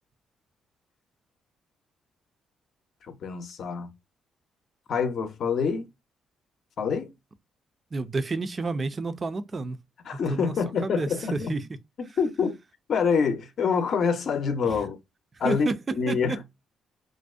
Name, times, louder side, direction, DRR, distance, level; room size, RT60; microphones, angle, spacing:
voice 1, 3.1-3.9 4.9-5.9 6.8-7.1 10.1-11.5 12.0-12.6 12.9-15.0 15.4-15.7 16.0-16.4, left 6 dB, 60° left, 0.6 m, -26 dB
voice 2, 7.9-9.8 10.3-10.6 10.8-11.6 14.6-14.8 15.4-15.8 16.1-16.4, right 3 dB, 35° right, 0.4 m, -30 dB
2.5 x 2.0 x 2.3 m
cardioid pair, 90°, 0 cm